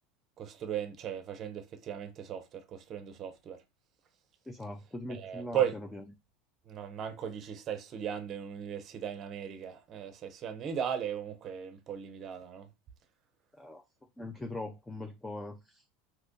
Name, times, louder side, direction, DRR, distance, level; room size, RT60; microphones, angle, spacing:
voice 1, 0.4-3.6 5.1-5.8 6.7-12.7, right 9 dB, 30° right, 0.6 m, -36 dB
voice 2, 4.5-6.0 13.5-13.8 14.2-15.8, left 2 dB, 5° left, 0.3 m, -41 dB
2.7 x 2.4 x 3.8 m
supercardioid pair, 155°, 0 cm